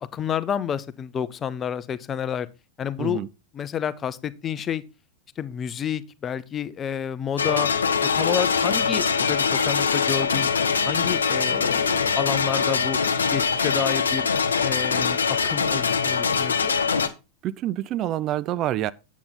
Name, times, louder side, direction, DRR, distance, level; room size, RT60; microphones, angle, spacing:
voice 1, 0.0-2.5 2.8-3.2 3.5-4.8 5.4-7.7 8.0-10.5 10.9-13.0 13.3-14.3 14.6-16.8, left 8 dB, 25° left, 0.7 m, -29 dB
sound 1, 7.4-17.1, left 5 dB, 70° left, 0.9 m, -23 dB
voice 2, 17.4-18.9, right 13 dB, 35° right, 0.4 m, -27 dB
8.6 x 8.3 x 3.9 m
figure-of-eight pair, 90°, 0 cm